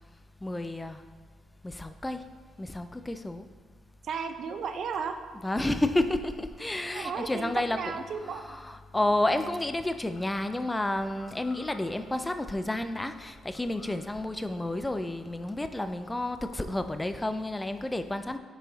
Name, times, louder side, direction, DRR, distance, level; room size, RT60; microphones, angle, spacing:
voice 1, 0.4-1.0 1.6-2.3 2.6-3.5 5.4-18.4, left 1 dB, 15° left, 9 dB, 0.3 m, -31 dB
voice 2, 4.0-5.2 6.9-8.4, right 6 dB, 65° right, 7 dB, 0.5 m, -34 dB
sound 1, 6.4-16.4, left 2 dB, 45° left, 0.9 m, -58 dB
6.4 x 4.8 x 3.9 m, 1.5 s
cardioid pair, 90°, 0 cm